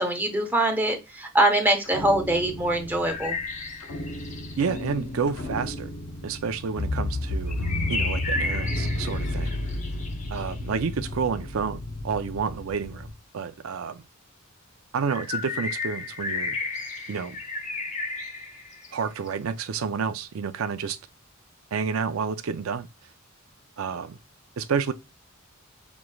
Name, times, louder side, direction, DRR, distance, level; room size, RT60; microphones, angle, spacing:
voice 1, 0.0-3.4, right 1 dB, 10° right, 0.9 m, -23 dB
sound 1, 1.8-13.1, left 1 dB, 80° left, 0.7 m, -32 dB
sound 2, 3.1-4.8 7.5-10.5 15.1-19.3, left 3 dB, 35° left, 0.7 m, -33 dB
voice 2, 4.6-5.9 6.2-9.5 10.3-13.1 13.3-14.0 14.9-16.6 17.1-17.4 18.9-21.0 21.7-22.9 23.8-24.2 24.6-24.9, right 6 dB, 75° right, 0.4 m, -30 dB
6.2 x 3.0 x 2.3 m
head